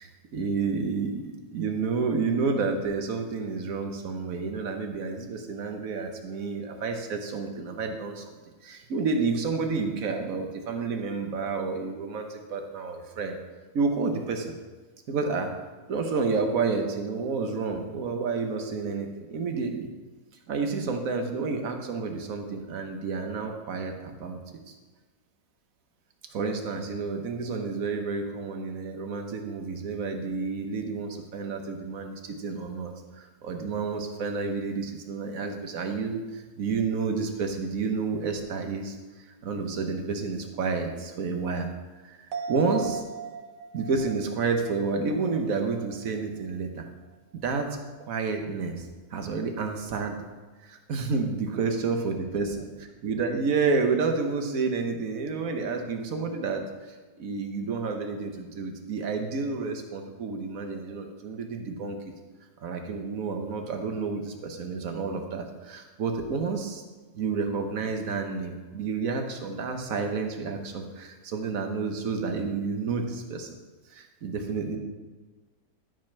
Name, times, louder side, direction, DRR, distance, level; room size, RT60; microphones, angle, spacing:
voice 1, 0.0-13.4 13.7-14.5 15.1-15.5 15.9-19.9 20.5-24.4 24.7-24.8 26.3-32.9 33.2-39.0 39.4-41.7 42.0-43.0 43.7-46.9 47.4-50.2 50.6-52.7 53.0-56.6 57.2-62.0 62.6-66.8 67.1-73.6 73.9-74.8, right 4 dB, 55° right, 4 dB, 1.4 m, -30 dB
sound 1, 42.3-46.0 46.4-46.5, right 6 dB, 85° right, 1.5 m, -38 dB
12.0 x 5.1 x 5.8 m, 1.3 s
omnidirectional pair, 1.8 m